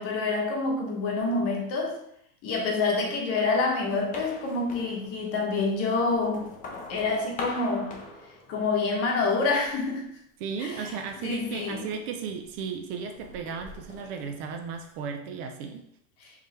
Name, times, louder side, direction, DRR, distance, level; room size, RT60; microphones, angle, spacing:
voice 1, 0.0-1.9 2.4-6.5 6.9-8.0 8.5-10.1 10.6-10.9 11.2-11.8, left 3 dB, 35° left, 1 dB, 1.0 m, -27 dB
sound 1, 3.8-5.4 5.9-8.9 9.3-9.9 10.7-12.6 13.0-15.0, left 3 dB, 20° left, 0.5 m, -43 dB
voice 2, 10.4-15.8, right 6 dB, 45° right, 5 dB, 0.5 m, -35 dB
4.8 x 3.3 x 3.2 m, 0.74 s
supercardioid pair, 155°, 41 cm